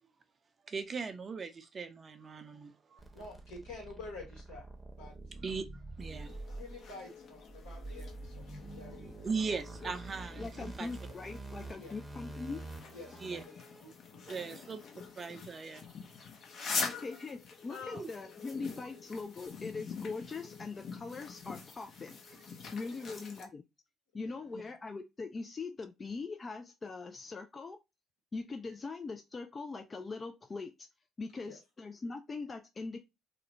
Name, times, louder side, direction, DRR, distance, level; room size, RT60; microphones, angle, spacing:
voice 1, 0.7-3.0 5.4-5.7 6.0-6.4 9.2-10.9 13.2-13.4 14.3-14.8 15.2-15.9 16.6-17.0 17.9-18.1, right 5 dB, 40° right, 0.4 m, -39 dB
voice 2, 3.0-5.2 6.5-9.6 11.8-12.0 12.9-14.7 17.7-18.0 22.8-23.1 24.1-24.5 31.4-31.6, left 3 dB, 80° left, 1.2 m, -50 dB
sound 1, 3.0-13.8, right 2 dB, 10° right, 0.7 m, -47 dB
sound 2, 6.0-23.4, left 4 dB, 55° left, 0.7 m, -45 dB
voice 3, 10.4-12.6 16.8-22.2 22.7-23.6 24.1-27.8 28.3-30.7 31.2-33.0, left 4 dB, 35° left, 0.3 m, -41 dB
2.4 x 2.0 x 3.0 m
hypercardioid pair, 55°, 0 cm